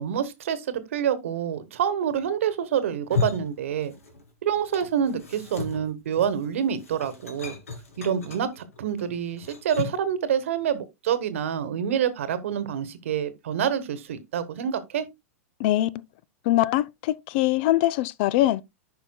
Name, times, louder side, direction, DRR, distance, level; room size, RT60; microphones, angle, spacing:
voice 1, 0.0-3.9 4.4-7.5 8.0-15.1, right 8 dB, 65° right, 1.1 m, -27 dB
sound 1, 2.9-4.3 4.6-10.1, left 5 dB, 75° left, 2.1 m, -35 dB
voice 2, 15.6-15.9 16.4-18.6, left 15 dB, 45° left, 0.4 m, -22 dB
13.5 x 5.6 x 2.2 m
figure-of-eight pair, 100°, 8 cm